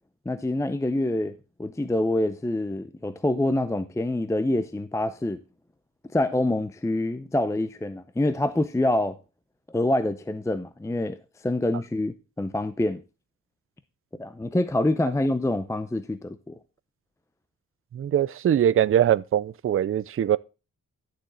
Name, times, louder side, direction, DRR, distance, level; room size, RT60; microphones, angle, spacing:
voice 1, 0.3-1.3 1.6-5.4 6.1-9.2 9.7-11.2 11.4-13.0 14.2-16.6, left 1 dB, 10° left, 0.5 m, -26 dB
voice 2, 17.9-20.4, right 10 dB, 40° right, 0.4 m, -22 dB
11.5 x 7.2 x 3.8 m
wide cardioid pair, 145°, 34 cm